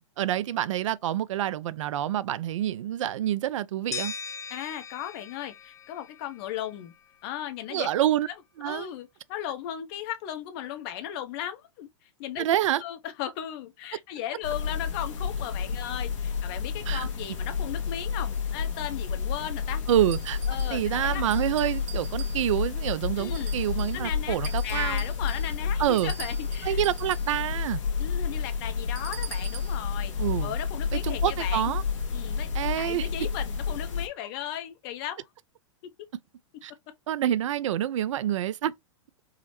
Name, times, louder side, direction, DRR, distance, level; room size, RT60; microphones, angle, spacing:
voice 1, 0.2-4.1 7.7-8.3 8.6-8.9 12.4-12.8 16.9-17.1 19.9-20.4 20.7-25.0 25.8-26.1 26.6-27.8 30.2-30.5 30.9-31.8 32.5-33.1 36.6-36.7 37.1-38.7, right 12 dB, 70° right, 0.4 m, -27 dB
sound 1, 3.9-6.8, left 6 dB, 20° left, 0.3 m, -39 dB
voice 2, 4.5-6.9 7.2-7.9 8.6-12.5 12.8-19.8 20.5-21.2 23.2-23.6 23.9-24.4 24.6-26.8 28.0-30.1 30.4-31.7 32.1-32.5 32.7-35.3, left 11 dB, 50° left, 0.7 m, -36 dB
sound 2, 14.4-34.1, left 6 dB, 70° left, 1.1 m, -30 dB
sound 3, 20.1-20.9 21.3-22.7 23.3-24.0 24.4-27.4 28.9-29.8, right 11 dB, 40° right, 0.7 m, -44 dB
4.8 x 2.0 x 2.9 m
hypercardioid pair, 110°, 16 cm